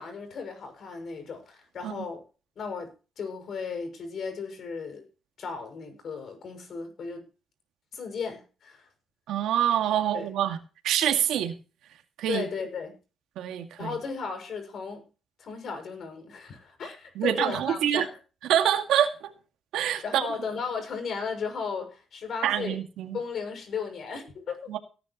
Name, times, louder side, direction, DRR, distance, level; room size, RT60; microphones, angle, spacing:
voice 1, 0.0-2.2 2.6-5.0 5.4-7.3 7.9-8.9 10.1-10.3 12.3-13.0 13.8-15.1 15.4-18.2 20.0-22.8 23.1-24.7, left 5 dB, 60° left, 6.4 m, -35 dB
voice 2, 9.3-10.6 10.8-11.5 12.2-12.5 13.4-13.9 17.2-18.1 18.5-19.3 19.7-20.3 22.4-23.2 24.7-24.8, right 10 dB, 85° right, 2.1 m, -26 dB
18.5 x 10.5 x 3.1 m
cardioid pair, 90°, 0 cm